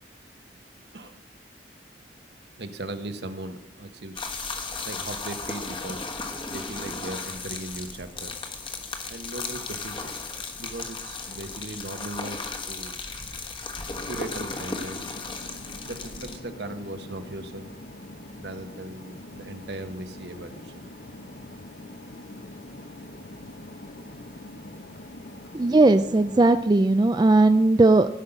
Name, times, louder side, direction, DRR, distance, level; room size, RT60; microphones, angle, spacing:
voice 1, 2.6-4.6 4.8-6.1 6.5-8.3 9.1-10.1 10.6-12.4 12.7-13.0 14.0-15.1 15.8-17.7 18.4-20.9, right 2 dB, 70° right, 8 dB, 1.1 m, -38 dB
sound 1, 4.2-16.4, left 4 dB, 30° left, 1.2 m, -35 dB
sound 2, 13.9-26.7, left 1 dB, 55° left, 0.9 m, -44 dB
voice 2, 25.5-28.1, right 2 dB, 25° right, 10 dB, 0.3 m, -18 dB
16.0 x 5.6 x 8.1 m, 0.86 s
head